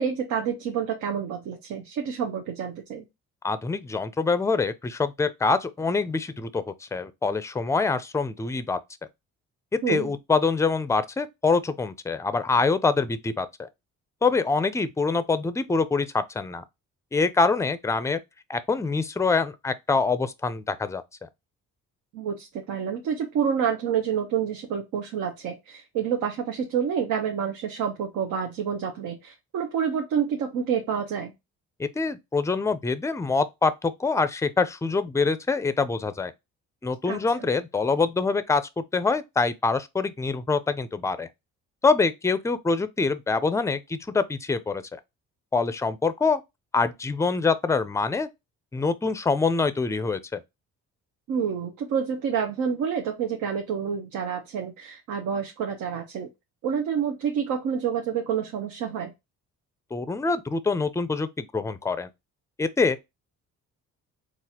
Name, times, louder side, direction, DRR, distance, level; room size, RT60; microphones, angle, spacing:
voice 1, 0.0-3.0 9.8-10.1 22.1-31.3 37.1-37.5 51.3-56.3 56.6-59.1, right 7 dB, 85° right, 0.8 m, -28 dB
voice 2, 3.4-8.8 9.7-13.7 14.2-16.6 17.1-18.2 18.5-21.0 31.8-36.3 36.8-41.3 41.8-45.0 45.5-46.4 46.7-48.3 48.7-50.4 59.9-62.1 62.6-63.0, left 4 dB, 10° left, 0.4 m, -25 dB
3.9 x 2.5 x 2.8 m
cardioid pair, 90°, 30 cm